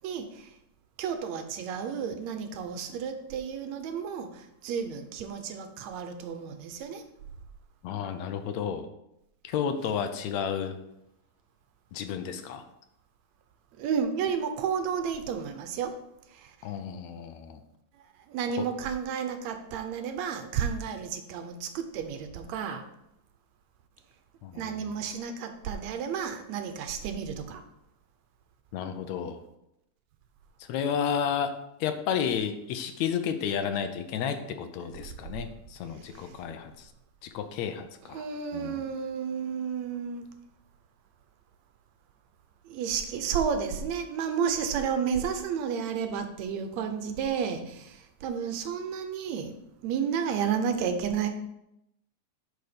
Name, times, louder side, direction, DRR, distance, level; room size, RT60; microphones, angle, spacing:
voice 1, 0.0-0.5 1.0-7.0 13.8-15.9 16.3-16.6 18.3-22.8 24.5-27.6 36.0-36.4 38.1-40.3 42.7-51.3, right 7 dB, 75° right, 7 dB, 2.0 m, -32 dB
voice 2, 7.8-8.9 9.4-10.8 11.9-12.7 16.6-17.6 18.6-18.7 24.4-24.8 28.7-29.4 30.7-36.9 37.2-38.3 38.5-38.8, left 7 dB, 75° left, 8 dB, 1.9 m, -32 dB
9.6 x 4.6 x 5.1 m, 0.84 s
omnidirectional pair, 3.3 m